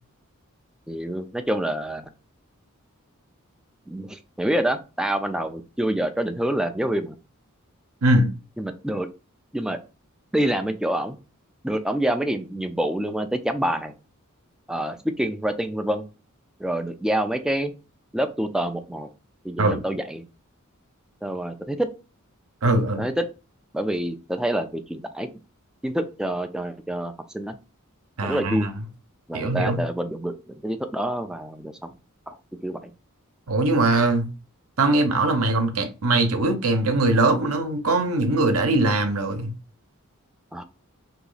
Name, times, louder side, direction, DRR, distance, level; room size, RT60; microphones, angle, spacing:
voice 1, 0.9-2.1 3.9-7.2 8.6-9.1 9.5-9.8 10.3-11.2 11.6-13.9 14.7-16.1 16.6-17.7 18.1-19.1 19.4-20.2 21.2-21.9 23.0-23.2 23.7-25.3 25.8-27.6 28.2-28.7 29.3-31.9 32.3-32.4 32.6-32.9 40.5-40.6, right 1 dB, 5° right, 0.3 m, -27 dB
voice 2, 22.6-23.1 28.2-28.7 29.3-29.8 33.5-34.3 34.8-39.5, right 2 dB, 75° right, 0.8 m, -21 dB
2.9 x 2.9 x 3.9 m
head